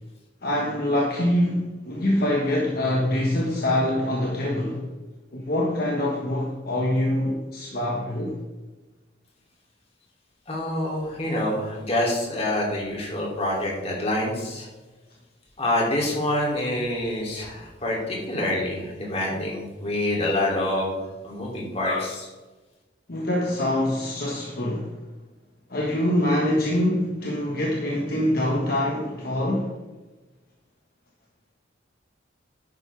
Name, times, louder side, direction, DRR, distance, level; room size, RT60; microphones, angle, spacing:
voice 1, 0.4-4.8 5.3-8.4 17.4-17.5 23.1-25.0 25.7-29.7, left 1 dB, 50° left, 1.4 m, -24 dB
voice 2, 10.5-14.7 15.6-21.0 21.2-22.3, left 1 dB, 35° left, 3.0 m, -26 dB
11.0 x 9.4 x 3.5 m
head